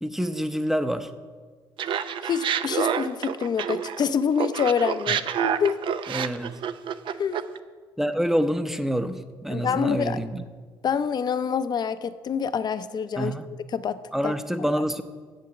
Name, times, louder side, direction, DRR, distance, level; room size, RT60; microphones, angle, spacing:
voice 1, 0.0-1.1 5.1-5.2 6.1-6.6 8.0-10.4 13.2-13.5 14.1-15.0, equal, 5° right, 10 dB, 0.6 m, -27 dB
Laughter, 1.8-4.1 4.4-7.6, right 8 dB, 60° right, 0.5 m, -28 dB
voice 2, 2.2-5.8 7.2-7.4 9.5-10.2 10.8-13.4 13.7-14.0 14.2-14.3, left 7 dB, 45° left, 13 dB, 0.5 m, -26 dB
7.9 x 7.6 x 7.0 m, 1.5 s
cardioid pair, 85°, 10 cm